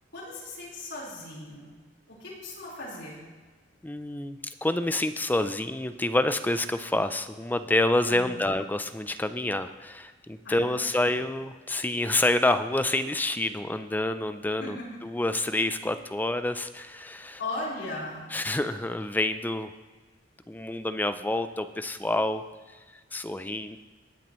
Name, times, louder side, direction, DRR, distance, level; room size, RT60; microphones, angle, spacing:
voice 1, 0.1-1.7 2.1-3.2 8.1-8.6 10.4-10.9 14.6-14.9 17.4-18.3, left 2 dB, 65° left, -6 dB, 4.1 m, -37 dB
voice 2, 3.8-14.8 15.0-17.4 18.3-19.7 20.5-22.4 23.1-23.8, left 1 dB, 10° left, 10 dB, 0.4 m, -28 dB
19.5 x 9.1 x 3.1 m, 1.4 s
head